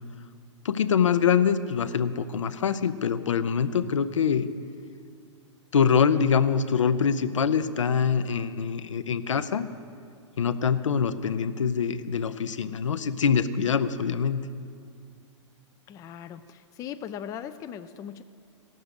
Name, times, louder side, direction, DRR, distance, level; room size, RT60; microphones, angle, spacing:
voice 1, 0.6-4.5 5.7-9.7 10.4-14.5, left 7 dB, 75° left, 12 dB, 0.6 m, -24 dB
voice 2, 15.9-18.2, left 9 dB, 20° left, 10 dB, 0.4 m, -39 dB
16.5 x 6.5 x 6.7 m, 2.3 s
figure-of-eight pair, 110°, 16 cm